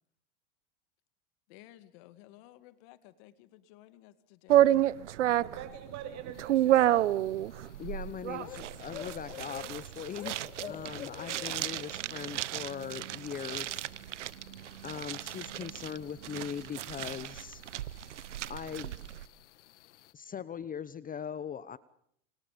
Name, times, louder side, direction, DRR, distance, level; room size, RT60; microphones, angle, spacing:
voice 1, 1.5-4.7, left 15 dB, 60° left, 13 dB, 2.3 m, -55 dB
sound 1, 4.5-19.2, right 13 dB, 90° right, 0.9 m, -30 dB
voice 2, 5.4-7.2 10.6-10.9, right 9 dB, 50° right, 7 dB, 7.3 m, -44 dB
sound 2, 6.3-20.1, left 13 dB, 80° left, 1.5 m, -51 dB
voice 3, 7.8-13.8 14.8-17.6 18.5-19.0 20.1-21.8, left 8 dB, 25° left, 17 dB, 0.9 m, -40 dB
30.0 x 26.5 x 5.2 m, 0.69 s
hypercardioid pair, 105°, 35 cm